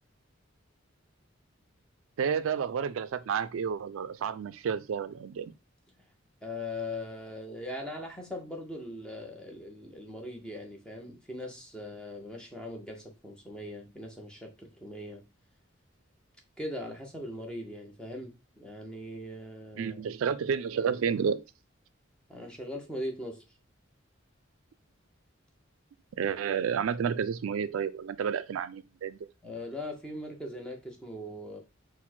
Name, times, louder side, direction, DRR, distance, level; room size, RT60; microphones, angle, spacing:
voice 1, 2.2-5.5 19.8-21.4 26.2-29.2, right 7 dB, 85° right, 0.4 m, -30 dB
voice 2, 6.4-15.3 16.6-20.0 22.3-23.4 29.4-31.6, left 1 dB, 5° left, 0.8 m, -40 dB
4.3 x 2.1 x 4.3 m
head